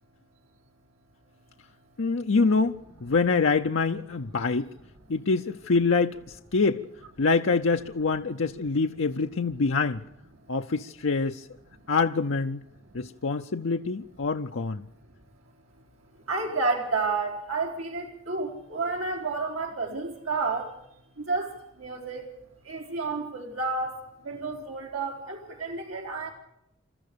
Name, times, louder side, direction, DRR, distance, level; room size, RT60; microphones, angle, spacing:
voice 1, 2.0-4.7 5.1-6.8 7.2-10.0 10.5-11.5 11.9-12.6 12.9-14.8, left 4 dB, 70° left, 0.7 m, -25 dB
voice 2, 16.3-20.7 21.3-21.5 21.8-22.3 22.7-24.0 24.3-26.3, right 3 dB, 85° right, 4.1 m, -30 dB
28.0 x 14.0 x 6.8 m
head